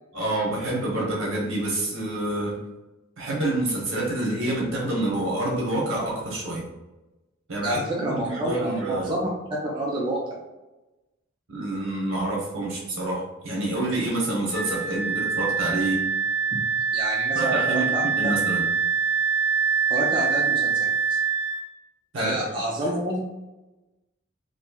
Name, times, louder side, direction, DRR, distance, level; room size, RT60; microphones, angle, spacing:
voice 1, 0.1-2.6 3.2-6.6 7.5-9.1 11.5-16.1 17.3-17.9 18.2-18.6 22.1-22.3, right 2 dB, 65° right, -3 dB, 0.9 m, -27 dB
voice 2, 7.6-9.2 9.7-10.4 16.5-16.6 16.9-18.3 19.9-21.2 22.2-23.3, right 1 dB, 25° right, -3 dB, 0.4 m, -29 dB
Wind instrument woodwind instrument, 14.5-21.6, right 6 dB, 10° right, 0.9 m, -24 dB
3.0 x 2.6 x 2.2 m, 1.1 s
head